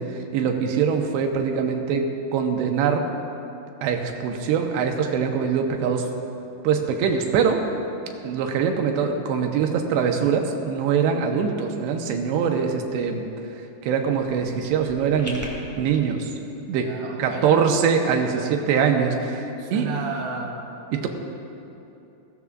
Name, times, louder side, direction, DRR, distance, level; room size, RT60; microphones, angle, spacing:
voice 1, 0.0-2.0 2.3-3.1 3.8-6.1 6.6-7.6 8.2-13.2 13.8-15.4 15.8-16.3 16.7-16.9 17.2-19.9 20.9-21.1, right 6 dB, 90° right, 3 dB, 3.1 m, -23 dB
sound 1, 14.0-16.0, equal, 10° left, 0.7 m, -39 dB
voice 2, 16.7-17.6 18.3-18.4 19.6-20.6, right 4 dB, 60° right, -1 dB, 2.1 m, -32 dB
22.0 x 16.5 x 2.5 m, 2.8 s
omnidirectional pair, 4.9 m